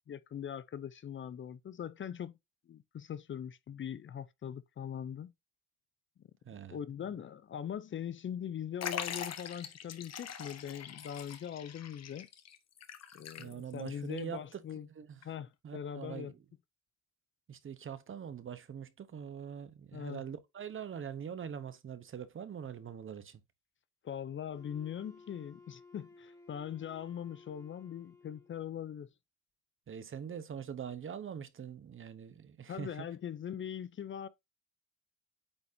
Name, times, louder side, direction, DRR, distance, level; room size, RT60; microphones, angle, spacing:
voice 1, 0.0-2.3 2.7-5.3 6.7-12.3 13.1-14.9 15.2-16.3 19.9-20.2 24.0-29.1 32.7-34.3, left 9 dB, 40° left, 0.5 m, -41 dB
voice 2, 6.4-7.2 13.4-15.2 15.6-16.4 17.5-23.4 29.9-33.1, right 8 dB, 45° right, 0.9 m, -43 dB
Liquid, 8.8-13.9 14.2-14.3 15.2-15.3, left 8 dB, 60° left, 1.1 m, -43 dB
Wind instrument woodwind instrument, 24.5-28.7, left 3 dB, 10° left, 2.5 m, -57 dB
8.9 x 4.1 x 2.7 m
cardioid pair, 90°, 30 cm